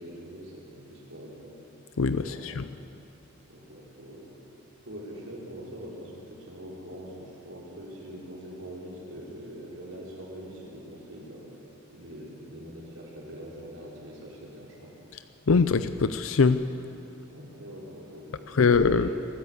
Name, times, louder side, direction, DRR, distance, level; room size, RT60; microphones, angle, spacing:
voice 1, 0.0-1.6 2.2-2.6 3.5-4.4 4.8-11.6 11.9-15.0 17.3-19.1, equal, 75° right, -4 dB, 5.2 m, -43 dB
voice 2, 2.0-2.7 15.5-16.6 18.5-19.1, left 4 dB, 75° left, 11 dB, 0.6 m, -22 dB
24.0 x 13.5 x 8.3 m, 2.8 s
head